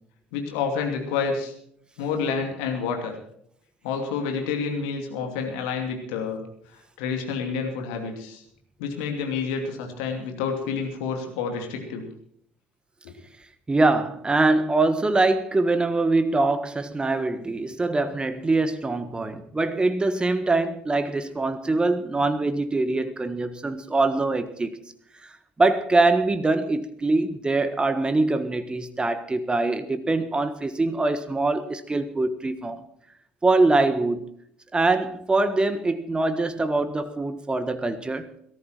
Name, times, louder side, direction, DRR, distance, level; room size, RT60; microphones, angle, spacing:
voice 1, 0.3-1.5 2.0-3.1 3.8-6.4 7.0-8.4 8.8-12.0 13.0-13.1, left 5 dB, 65° left, 2.8 m, -29 dB
voice 2, 13.7-24.8 25.6-32.8 33.4-34.3 34.7-38.4, right 2 dB, 15° right, 1.4 m, -23 dB
18.0 x 14.0 x 4.5 m
figure-of-eight pair, 60°, 6 cm